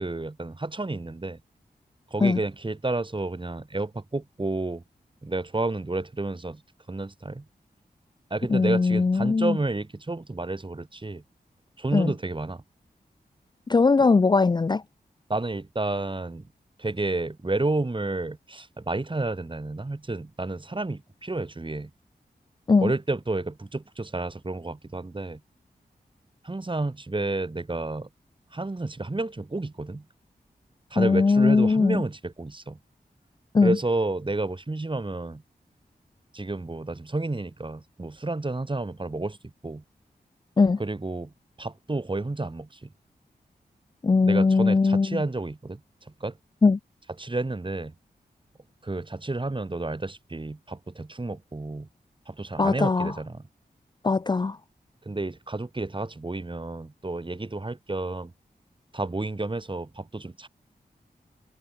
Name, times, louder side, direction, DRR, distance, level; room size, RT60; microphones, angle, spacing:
voice 1, 0.0-1.4 2.1-4.8 5.2-6.6 6.9-7.5 8.3-11.2 11.8-12.6 15.3-16.5 16.8-21.9 22.8-25.4 26.4-28.1 28.5-30.0 30.9-32.8 33.6-35.4 36.3-39.8 40.8-41.3 41.6-42.9 44.2-45.8 46.2-46.4 47.2-47.9 48.8-51.9 52.3-53.4 55.0-58.3 58.9-60.5, right 2 dB, 30° right, 2.6 m, -30 dB
voice 2, 8.5-9.6 11.9-12.1 13.7-14.8 22.7-22.9 31.0-32.0 33.5-33.8 40.6-40.8 44.0-45.2 46.6-46.8 52.6-53.1 54.0-54.6, left 4 dB, 25° left, 0.4 m, -20 dB
cardioid pair, 60°, 16 cm